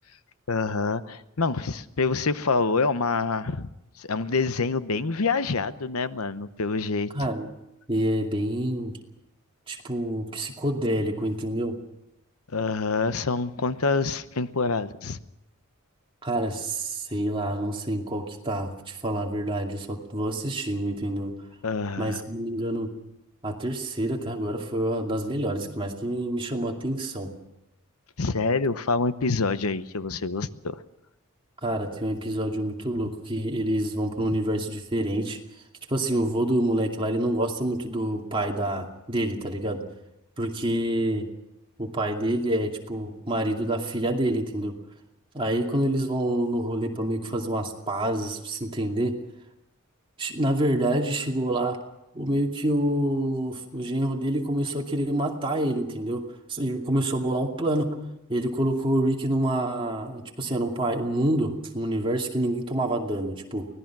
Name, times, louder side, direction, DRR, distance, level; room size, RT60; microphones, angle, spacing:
voice 1, 0.5-3.7 4.0-7.1 12.5-15.2 21.6-22.2 28.2-30.8, left 4 dB, 85° left, 13 dB, 0.9 m, -26 dB
voice 2, 7.1-7.5 7.9-8.9 9.7-11.8 16.2-21.3 22.0-22.9 23.4-27.3 31.6-35.4 35.9-39.8 40.4-41.3 41.8-44.7 45.3-49.2 50.2-51.8 52.1-56.2 56.5-58.0 58.3-63.7, right 1 dB, 25° right, 0 dB, 2.5 m, -27 dB
24.5 x 18.0 x 6.1 m, 0.87 s
head